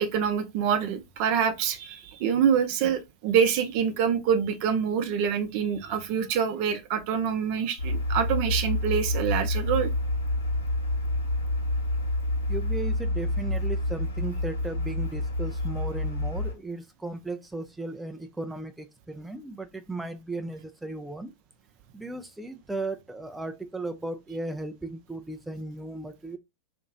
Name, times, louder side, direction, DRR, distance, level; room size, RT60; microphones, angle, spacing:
voice 1, 0.0-9.9, right 7 dB, 45° right, 0.6 m, -26 dB
sound 1, 7.8-16.5, left 1 dB, 80° left, 1.2 m, -28 dB
voice 2, 12.5-21.3 21.9-26.4, right 2 dB, 5° right, 0.4 m, -36 dB
2.9 x 2.5 x 3.8 m
figure-of-eight pair, 90°, 0 cm